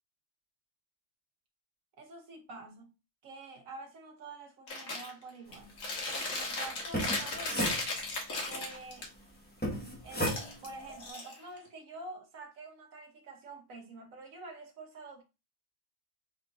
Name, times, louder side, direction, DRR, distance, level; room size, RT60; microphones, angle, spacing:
voice 1, 2.0-2.9 3.2-5.7 6.1-7.6 8.5-9.1 10.0-10.3 10.6-15.2, right 3 dB, 80° right, 1.6 m, -47 dB
Chewing mastication, 4.7-5.1 5.5-9.1 10.1-11.7, left 2 dB, 90° left, 1.7 m, -36 dB
sound 1, 6.8-8.4 9.6-10.7, equal, 10° left, 1.0 m, -34 dB
4.2 x 4.2 x 2.6 m
omnidirectional pair, 1.4 m